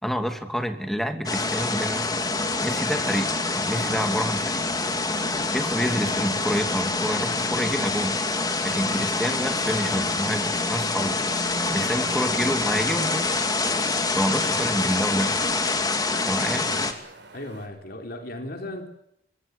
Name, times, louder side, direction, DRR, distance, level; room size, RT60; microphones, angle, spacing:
voice 1, 0.0-2.1 2.6-4.6 5.5-8.2 8.6-11.2 11.7-13.3 14.1-15.3 16.3-16.7, equal, ahead, 2.6 m, -28 dB
sound 1, 1.3-16.9, left 3 dB, 20° left, 2.6 m, -26 dB
Wind, 3.3-13.3, right 1 dB, 90° right, 3.1 m, -41 dB
Wind 2, 9.8-17.7, right 3 dB, 70° right, 6.5 m, -48 dB
voice 2, 17.3-18.9, left 1 dB, 60° left, 4.0 m, -36 dB
25.0 x 20.5 x 8.4 m
head